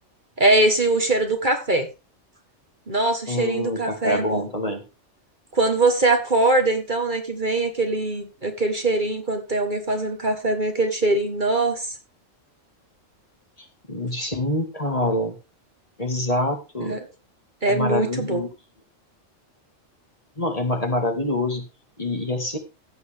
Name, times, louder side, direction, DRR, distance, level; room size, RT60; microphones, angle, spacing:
voice 1, 0.4-1.9 2.9-4.5 5.5-11.9 16.8-17.0 17.6-18.4, right 2 dB, 40° right, 5 dB, 1.7 m, -22 dB
voice 2, 3.3-4.8 13.6-15.4 16.0-17.0 17.7-18.5 20.4-21.7 22.0-22.6, left 1 dB, 30° left, 4 dB, 2.1 m, -26 dB
15.5 x 8.2 x 3.5 m, 0.28 s
omnidirectional pair, 1.3 m